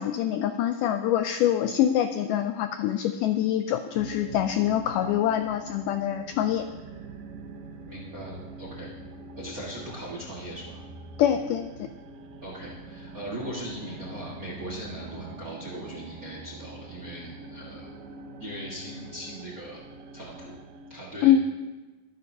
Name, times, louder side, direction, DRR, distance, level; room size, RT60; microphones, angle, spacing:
voice 1, 0.0-6.6 11.2-11.7 21.2-21.4, left 10 dB, 85° left, 8 dB, 1.8 m, -24 dB
sound 1, 4.0-21.4, right 2 dB, 85° right, 2.8 m, -44 dB
voice 2, 7.9-8.9 9.4-10.8 12.4-17.9 18.4-19.8 20.1-20.5 20.9-21.3, equal, 45° right, -3 dB, 1.2 m, -39 dB
23.0 x 9.8 x 2.7 m, 1.2 s
omnidirectional pair, 4.2 m